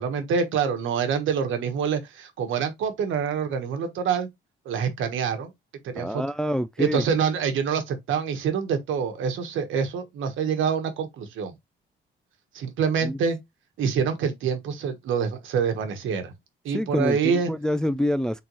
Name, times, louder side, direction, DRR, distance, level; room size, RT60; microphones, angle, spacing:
voice 1, 0.0-4.3 4.6-5.5 5.8-6.2 6.8-11.5 12.5-13.4 13.8-16.3 16.6-17.5, right 6 dB, 80° right, 1.2 m, -26 dB
voice 2, 6.0-7.0 13.0-13.2 16.7-18.4, equal, 5° left, 0.3 m, -26 dB
3.8 x 2.9 x 4.0 m
cardioid pair, 90°, 20 cm